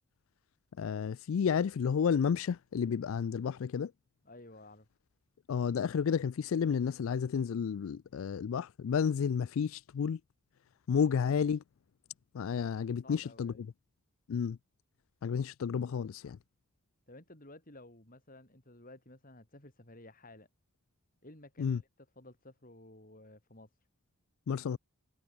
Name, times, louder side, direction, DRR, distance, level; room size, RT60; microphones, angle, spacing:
voice 1, 0.8-3.9 5.5-10.2 10.9-11.6 12.3-13.5 14.3-14.6 15.2-16.4 21.6-21.8 24.5-24.8, left 7 dB, 65° left, 0.3 m, -31 dB
voice 2, 4.2-4.9 13.0-13.7 17.1-20.5 21.2-23.7, left 2 dB, 40° left, 4.3 m, -54 dB
head